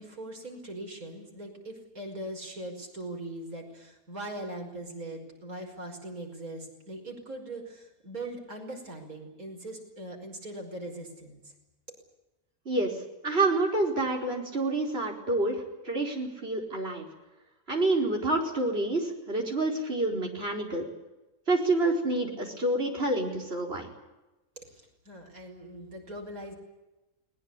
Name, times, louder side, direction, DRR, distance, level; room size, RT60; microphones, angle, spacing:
voice 1, 0.0-11.4 24.6-26.5, right 1 dB, 75° right, 2 dB, 5.7 m, -41 dB
voice 2, 13.2-17.0 17.7-20.9 21.5-23.9, right 2 dB, 45° right, 1 dB, 4.8 m, -28 dB
20.5 x 20.5 x 9.9 m, 1.0 s
omnidirectional pair, 1.5 m